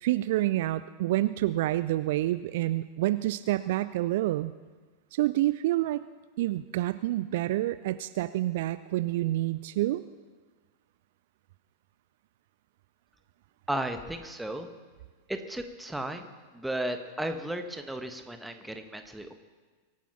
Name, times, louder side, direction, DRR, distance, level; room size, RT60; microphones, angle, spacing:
voice 1, 0.0-4.5 5.1-6.0 6.4-10.0, right 15 dB, 55° right, 14 dB, 0.4 m, -28 dB
voice 2, 13.7-14.7 15.3-16.3 16.5-19.3, right 1 dB, 5° right, 6 dB, 1.4 m, -34 dB
23.5 x 9.3 x 5.8 m, 1.4 s
figure-of-eight pair, 90°, 0 cm